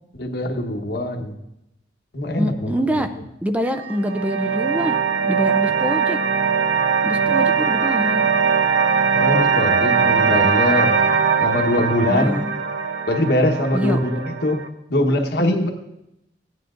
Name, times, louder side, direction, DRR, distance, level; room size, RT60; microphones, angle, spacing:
voice 1, 0.2-1.3 2.1-3.0 9.1-10.9 11.4-12.4 13.1-15.7, left 1 dB, 65° left, 4 dB, 1.2 m, -22 dB
voice 2, 2.4-3.1 3.4-5.0 5.3-6.2 7.0-8.2 12.1-12.5 13.7-14.0, equal, 10° right, 7 dB, 0.4 m, -25 dB
sound 1, 3.6-14.7, right 5 dB, 85° right, 0.7 m, -20 dB
16.5 x 9.4 x 2.5 m, 0.85 s
head